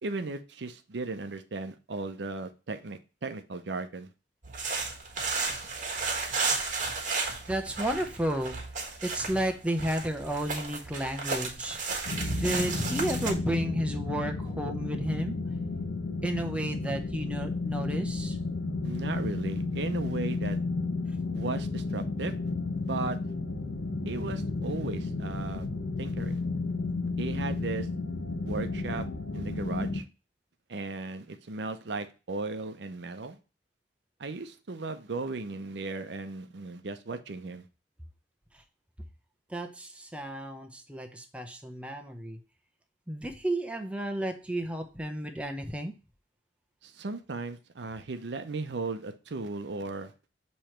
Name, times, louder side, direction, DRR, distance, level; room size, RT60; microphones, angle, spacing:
voice 1, 0.0-4.1 18.8-20.6 21.3-22.4 22.8-23.2 24.0-25.7 26.0-26.4 27.2-27.9 28.4-29.1 29.3-30.0 30.7-33.4 34.2-37.6 46.8-50.1, right 3 dB, 70° right, 8 dB, 0.6 m, -36 dB
sound 1, 4.4-13.3, right 4 dB, 45° right, 1.5 m, -33 dB
voice 2, 7.5-8.6 9.0-11.8 12.3-15.4 16.2-18.4 39.5-42.4 43.1-45.9, right 1 dB, 5° right, 4 dB, 0.8 m, -32 dB
sound 2, 12.1-30.0, left 3 dB, 80° left, 0.8 m, -32 dB
6.9 x 3.1 x 4.4 m, 0.32 s
head